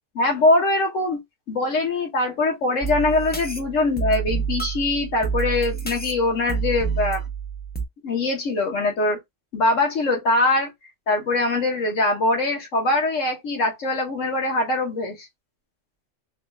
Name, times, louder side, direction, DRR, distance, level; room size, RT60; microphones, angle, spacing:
voice 1, 0.1-1.2 1.5-7.2 8.0-9.2 9.5-10.7 11.1-15.3, left 2 dB, 90° left, 1.6 m, -22 dB
sound 1, 2.8-7.8, right 6 dB, 10° left, 0.4 m, -28 dB
3.8 x 2.3 x 3.2 m
omnidirectional pair, 1.3 m